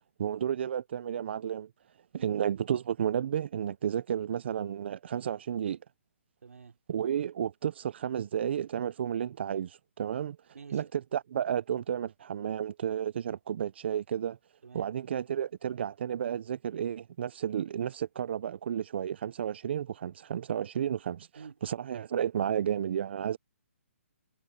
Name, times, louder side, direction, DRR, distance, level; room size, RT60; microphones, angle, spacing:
voice 1, 0.2-1.7 2.1-5.8 6.9-10.4 10.7-14.4 14.7-21.3 21.6-23.4, right 9 dB, 45° right, 0.5 m, -32 dB
voice 2, 6.4-6.8 10.5-10.9 14.6-14.9 21.4-21.6, right 5 dB, 75° right, 3.8 m, -49 dB
hypercardioid pair, 160°, 8 cm